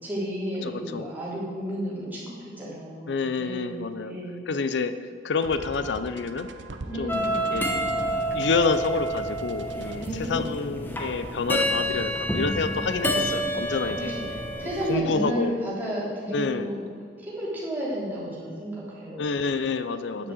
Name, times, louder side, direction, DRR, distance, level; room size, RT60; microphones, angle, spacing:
voice 1, 0.0-4.5 6.9-7.5 9.9-10.5 14.0-14.2 14.6-16.8 17.2-19.4 20.2-20.3, equal, 10° right, -8 dB, 3.5 m, -32 dB
voice 2, 0.6-1.1 3.1-4.1 4.5-4.9 5.2-6.5 7.0-7.6 8.3-14.1 14.8-15.6 16.3-16.7 19.2-20.3, left 4 dB, 70° left, 11 dB, 0.5 m, -28 dB
sound 1, 5.4-12.7, right 3 dB, 90° right, 0.8 m, -44 dB
sound 2, 7.1-14.9, right 1 dB, 10° left, 1.2 m, -28 dB
9.7 x 7.5 x 7.8 m, 2.1 s
head